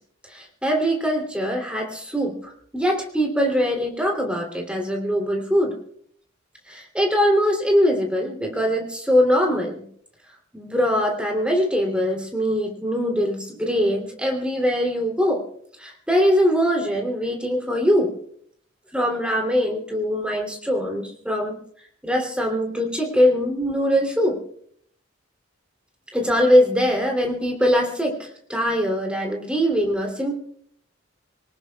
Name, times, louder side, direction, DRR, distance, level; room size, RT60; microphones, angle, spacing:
voice 1, 0.3-5.7 6.7-9.8 10.5-15.4 15.8-18.1 18.9-21.6 22.0-24.4 26.1-30.3, equal, 5° right, 1 dB, 3.2 m, -22 dB
26.0 x 18.5 x 2.4 m, 0.62 s
head